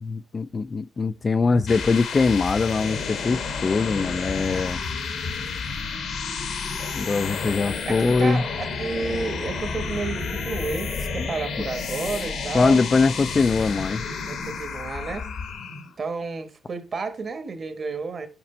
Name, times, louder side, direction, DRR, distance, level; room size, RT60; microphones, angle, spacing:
voice 1, 0.0-4.8 6.9-8.4 11.2-11.3 11.6-11.7 12.5-14.0, left 4 dB, 35° left, 0.3 m, -22 dB
sound 1, 1.4-15.9, left 5 dB, 65° left, 1.2 m, -31 dB
voice 2, 7.9-12.8 14.1-15.3 16.0-18.3, right 4 dB, 40° right, 1.2 m, -31 dB
5.9 x 5.1 x 4.3 m
cardioid pair, 90°, 0 cm